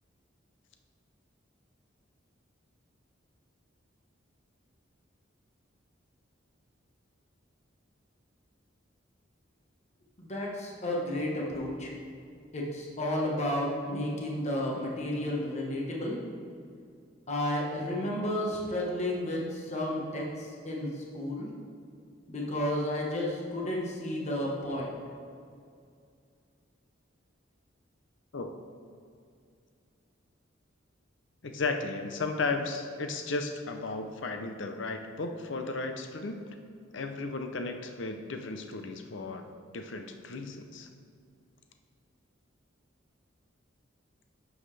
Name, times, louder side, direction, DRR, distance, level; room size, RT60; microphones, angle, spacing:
voice 1, 10.2-11.9 12.5-16.2 17.3-21.5 22.3-25.0, left 1 dB, 35° left, -3 dB, 1.4 m, -32 dB
voice 2, 31.4-36.4 36.9-39.5 39.7-40.9, left 3 dB, 70° left, 6 dB, 0.7 m, -34 dB
11.5 x 7.2 x 3.3 m, 2.3 s
head